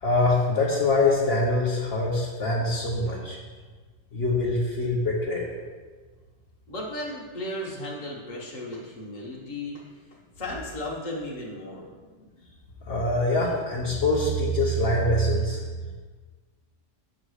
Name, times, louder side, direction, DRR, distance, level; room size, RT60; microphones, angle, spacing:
voice 1, 0.0-3.4 4.1-5.5 12.9-15.6, left 2 dB, 55° left, -5 dB, 1.2 m, -24 dB
voice 2, 6.7-9.8 10.4-11.9, left 1 dB, 35° left, -4 dB, 1.3 m, -35 dB
7.5 x 4.0 x 6.4 m, 1.4 s
omnidirectional pair, 1.3 m